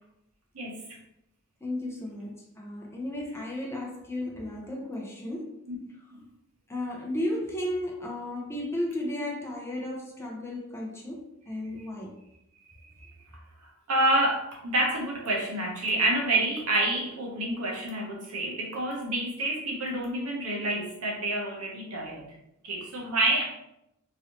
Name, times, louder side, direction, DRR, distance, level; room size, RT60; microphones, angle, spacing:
voice 1, 0.5-1.0 5.7-5.8 6.1-6.2 13.0-13.1 13.9-22.3 22.6-23.4, right 1 dB, 85° right, -1 dB, 0.9 m, -28 dB
voice 2, 1.6-5.6 6.7-12.2, left 1 dB, 10° left, -1 dB, 0.6 m, -34 dB
3.0 x 2.6 x 2.9 m, 0.81 s
head